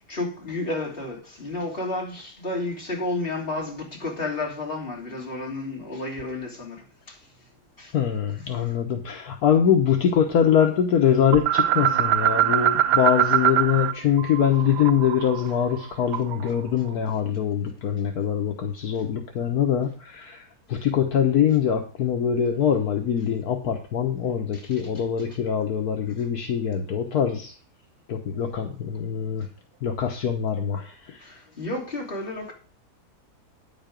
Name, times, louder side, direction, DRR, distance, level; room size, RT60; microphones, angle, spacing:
voice 1, 0.1-7.1 7.8-7.9 24.5-24.8 28.3-28.4 31.2-32.5, left 2 dB, 35° left, 3.3 m, -31 dB
voice 2, 7.9-27.5 28.1-29.5 29.8-31.2, left 8 dB, 70° left, 1.5 m, -23 dB
sound 1, 11.3-13.9 14.2-16.5, right 11 dB, 90° right, 1.3 m, -23 dB
9.9 x 7.9 x 5.2 m
omnidirectional pair, 1.7 m